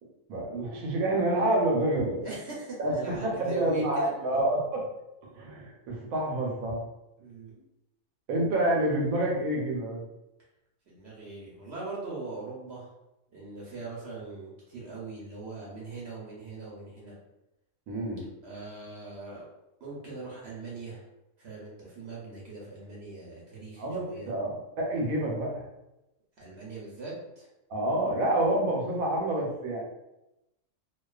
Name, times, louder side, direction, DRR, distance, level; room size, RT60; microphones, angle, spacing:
voice 1, 0.3-2.2 2.8-4.8 5.2-6.8 8.3-10.0 17.9-18.2 23.8-25.7 27.7-29.8, right 1 dB, 80° right, -1 dB, 1.1 m, -28 dB
voice 2, 2.2-4.5 7.2-7.5 10.9-12.9 13.3-17.2 18.4-19.5 19.8-21.0 21.4-24.3 26.4-27.5, right 3 dB, 60° right, -5 dB, 0.8 m, -41 dB
2.3 x 2.3 x 2.3 m, 0.92 s
omnidirectional pair, 1.5 m